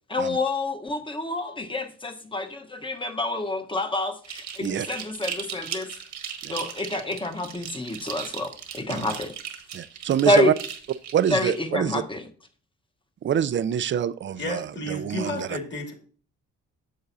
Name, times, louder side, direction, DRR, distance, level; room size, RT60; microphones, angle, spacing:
voice 1, 0.1-5.9 6.5-9.3 10.2-10.5 11.3-12.3, left 2 dB, 15° left, 5 dB, 1.1 m, -27 dB
sound 1, 4.2-11.6, right 8 dB, 75° right, 1.4 m, -37 dB
voice 2, 9.7-10.5 11.1-12.0 13.2-15.5, right 9 dB, 40° right, 16 dB, 0.5 m, -26 dB
voice 3, 14.4-15.9, left 2 dB, 35° left, 3 dB, 2.3 m, -32 dB
8.7 x 6.9 x 2.7 m, 0.42 s
cardioid pair, 90°, 30 cm